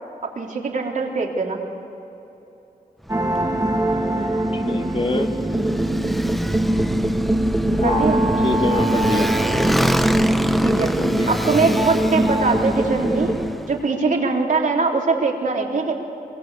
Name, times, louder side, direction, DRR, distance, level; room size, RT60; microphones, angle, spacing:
voice 1, 0.4-1.6 7.8-8.2 10.6-10.9 11.3-13.3 13.7-15.9, right 4 dB, 60° right, 0 dB, 3.8 m, -22 dB
Motorcycle, 3.0-13.7, equal, ahead, 1.0 m, -27 dB
sound 1, 3.1-13.5, right 1 dB, 20° right, 2.4 m, -22 dB
voice 2, 4.5-5.3 7.8-8.1 8.4-9.3 11.0-11.4, left 3 dB, 40° left, 3 dB, 2.4 m, -25 dB
26.5 x 23.5 x 8.4 m, 3.0 s
wide cardioid pair, 90°, 15 cm